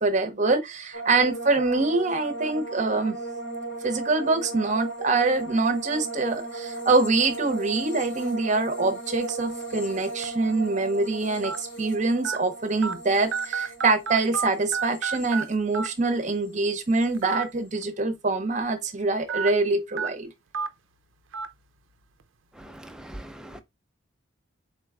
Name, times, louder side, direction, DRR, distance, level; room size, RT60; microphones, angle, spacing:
voice 1, 0.0-3.2 3.8-20.3, right 3 dB, 40° right, 0.7 m, -25 dB
sound 1, 0.9-16.2 16.4-17.1, right 2 dB, 70° left, 1.5 m, -37 dB
sound 2, 9.3-9.5 10.2-10.3 11.4-11.6 12.2-12.4 12.8-12.9 13.3-14.5 14.7-15.4 15.7-15.9 17.1-17.4 17.8-17.9 19.3-19.5 20.0-20.1 20.5-20.7 21.3-21.5, right 5 dB, 85° right, 0.5 m, -29 dB
voice 2, 22.6-23.6, right 1 dB, 5° right, 0.4 m, -42 dB
4.4 x 3.9 x 2.3 m
head